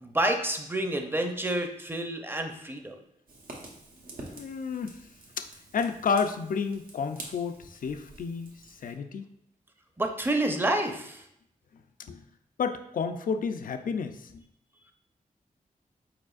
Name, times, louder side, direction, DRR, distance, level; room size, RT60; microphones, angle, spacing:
voice 1, 0.0-2.9 10.0-11.2, right 1 dB, 15° right, 4 dB, 0.6 m, -29 dB
Fire, 3.3-8.9, right 2 dB, 80° right, 1.1 m, -47 dB
voice 2, 4.3-5.1 5.4-5.5 5.7-9.3 11.7-12.3 12.6-14.5, left 5 dB, 70° left, 8 dB, 0.4 m, -31 dB
4.9 x 4.4 x 2.4 m, 0.74 s
cardioid pair, 75°, 15 cm